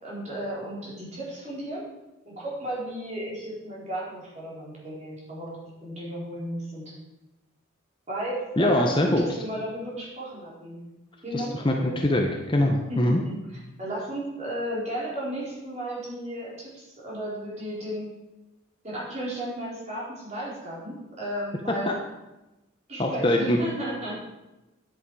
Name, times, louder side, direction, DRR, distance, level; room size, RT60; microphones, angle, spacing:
voice 1, 0.0-1.8 2.3-6.9 8.1-10.8 11.2-11.9 12.9-18.1 18.8-22.0 22.9-24.2, right 1 dB, 35° right, -6 dB, 4.0 m, -34 dB
voice 2, 8.6-9.2 11.3-13.2 21.7-21.8 23.0-23.6, left 1 dB, 25° left, 2 dB, 0.8 m, -23 dB
9.9 x 8.8 x 4.8 m, 1.0 s
head